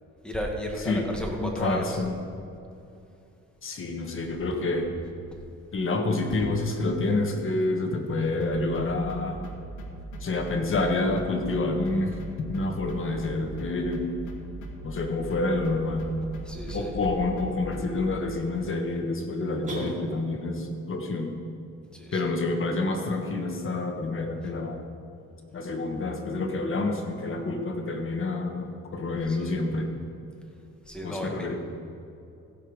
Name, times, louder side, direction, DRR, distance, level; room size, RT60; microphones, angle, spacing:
voice 1, 0.2-1.9 16.4-17.0 21.9-22.2 29.3-29.6 30.9-31.5, equal, 5° left, 0 dB, 2.1 m, -34 dB
voice 2, 1.4-2.1 3.6-4.9 5.7-9.4 10.2-14.1 14.8-16.1 16.7-21.3 22.1-24.8 25.5-29.9 31.0-31.6, left 2 dB, 45° left, 3 dB, 1.7 m, -28 dB
sound 1, 8.4-18.1, right 1 dB, 90° left, 1.4 m, -40 dB
sound 2, 19.6-20.6, right 2 dB, 25° right, 2.7 m, -37 dB
16.0 x 5.4 x 6.3 m, 2.7 s
cardioid pair, 90°, 30 cm